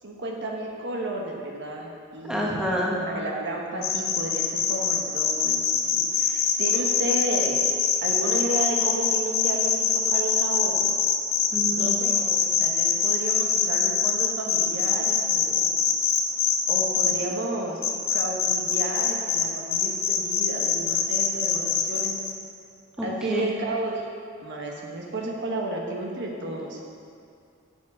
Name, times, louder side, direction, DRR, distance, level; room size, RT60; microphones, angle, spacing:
voice 1, 0.0-7.6 8.0-11.1 11.8-15.7 16.7-17.8 18.1-22.1 23.0-24.1 24.4-26.8, right 2 dB, 55° right, -1 dB, 1.3 m, -32 dB
voice 2, 2.3-3.0 11.5-12.0 23.0-23.5, equal, 5° right, -4 dB, 1.4 m, -28 dB
sound 1, 3.8-17.1 17.8-19.4 19.7-22.3, left 7 dB, 80° left, 1.1 m, -23 dB
12.0 x 7.2 x 4.9 m, 2.3 s
head